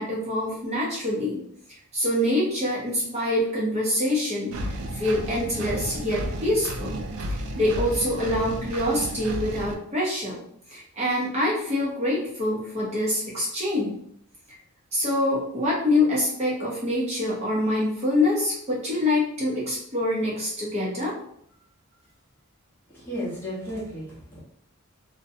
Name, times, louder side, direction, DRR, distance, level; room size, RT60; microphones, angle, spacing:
voice 1, 0.0-1.4 1.9-4.6 4.9-10.4 10.7-14.0 14.9-21.1, left 1 dB, 30° right, -6 dB, 0.6 m, -25 dB
Engine, 4.5-9.7, right 1 dB, 75° right, 0.4 m, -32 dB
voice 2, 22.9-24.4, equal, 10° left, -8 dB, 0.7 m, -34 dB
2.6 x 2.1 x 2.6 m, 0.69 s
head